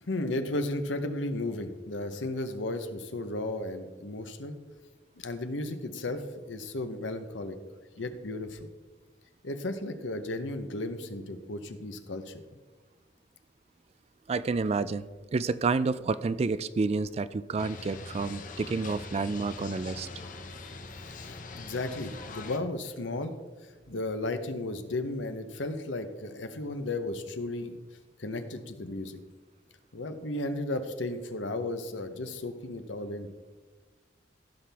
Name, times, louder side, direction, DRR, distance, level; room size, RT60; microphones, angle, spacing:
voice 1, 0.0-4.6 5.2-7.6 8.0-8.7 9.4-12.4 21.0-23.3 23.6-27.8 28.2-29.2 29.9-33.3, left 2 dB, 85° left, 9 dB, 0.9 m, -34 dB
voice 2, 14.3-20.1, right 4 dB, 35° right, 15 dB, 0.3 m, -29 dB
sound 1, 17.6-22.6, left 3 dB, 45° left, 0.7 m, -43 dB
15.5 x 5.9 x 3.5 m, 1.3 s
head